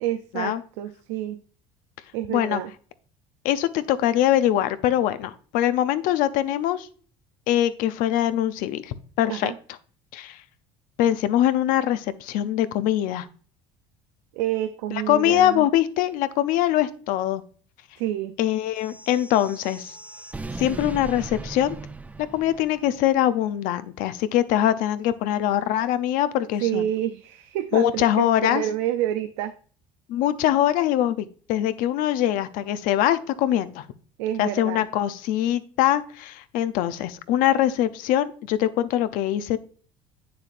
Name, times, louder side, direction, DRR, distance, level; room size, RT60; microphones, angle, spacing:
voice 1, 0.0-1.4 2.1-2.7 9.3-9.6 14.3-15.7 18.0-18.4 26.6-29.5 34.2-34.8, right 12 dB, 90° right, 9 dB, 0.4 m, -28 dB
voice 2, 2.3-2.6 3.4-6.9 7.5-9.5 10.1-10.4 11.0-13.3 15.1-17.4 18.4-19.9 20.6-21.8 22.3-26.8 27.7-28.6 30.1-33.8 34.4-39.6, left 12 dB, 70° left, 13 dB, 0.6 m, -23 dB
sound 1, 18.8-23.1, right 2 dB, 10° right, 0.4 m, -38 dB
8.2 x 6.8 x 2.5 m, 0.43 s
supercardioid pair, 100°, 15 cm